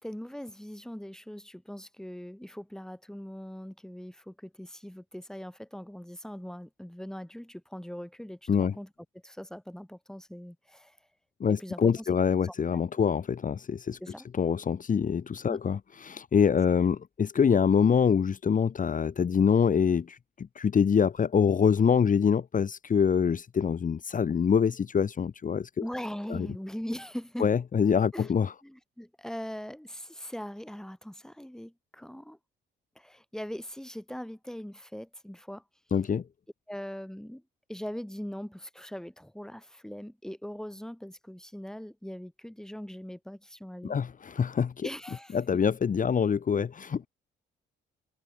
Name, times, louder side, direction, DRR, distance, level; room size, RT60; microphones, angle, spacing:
voice 1, 0.0-8.9 9.2-11.0 11.5-12.1 14.0-14.3 15.5-15.6 25.8-27.5 28.1-28.3 28.6-32.4 33.0-35.6 36.7-37.4 37.7-44.0 44.8-45.6, equal, 5° left, 5.5 m, -41 dB
voice 2, 11.4-14.0 14.3-25.8 26.3-26.5 27.4-28.5 35.9-36.2 43.8-44.9 45.3-47.1, left 7 dB, 40° left, 1.8 m, -25 dB
cardioid pair, 90°, 20 cm